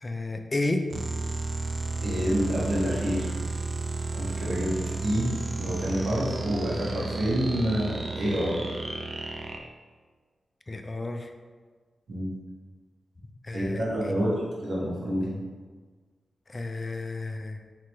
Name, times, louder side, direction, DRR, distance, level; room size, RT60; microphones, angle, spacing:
voice 1, 0.0-0.8 10.7-11.3 13.4-14.1 16.5-17.6, left 2 dB, 30° left, 6 dB, 0.3 m, -32 dB
sound 1, 0.9-9.6, right 3 dB, 45° right, 0.4 m, -32 dB
voice 2, 2.0-3.4 4.1-8.6 12.1-12.3 13.5-15.4, equal, 65° right, -5 dB, 1.1 m, -28 dB
3.3 x 2.9 x 3.0 m, 1.5 s
wide cardioid pair, 95°, 0 cm